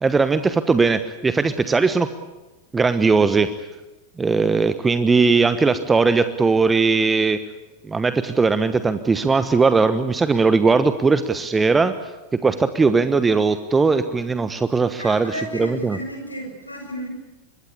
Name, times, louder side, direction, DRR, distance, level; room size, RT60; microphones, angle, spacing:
voice 1, 0.0-2.1 2.7-3.5 4.2-7.4 7.9-11.9 12.3-16.0, right 4 dB, 15° right, 12 dB, 1.1 m, -19 dB
voice 2, 15.0-17.1, equal, 85° left, 3 dB, 7.5 m, -33 dB
25.0 x 21.0 x 8.4 m, 1.1 s
figure-of-eight pair, 90°, 0 cm